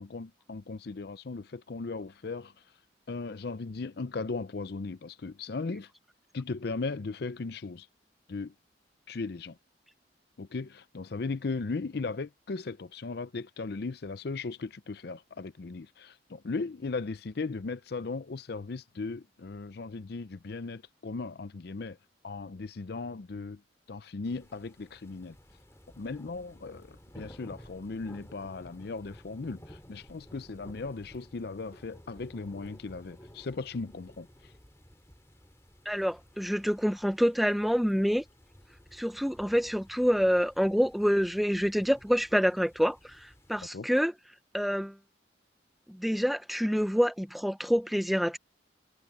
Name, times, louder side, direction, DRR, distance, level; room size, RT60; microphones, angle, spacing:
voice 1, 0.0-2.5 3.1-5.9 6.3-7.9 8.3-8.5 9.1-9.6 10.4-22.0 22.2-23.6 23.9-25.3 26.0-34.3 43.7-43.9, left 3 dB, 55° left, 0.5 m, -37 dB
sound 1, 24.2-43.6, equal, 15° left, 3.5 m, -54 dB
voice 2, 35.9-38.2 38.9-44.1 44.5-44.9 45.9-48.4, equal, ahead, 0.7 m, -27 dB
head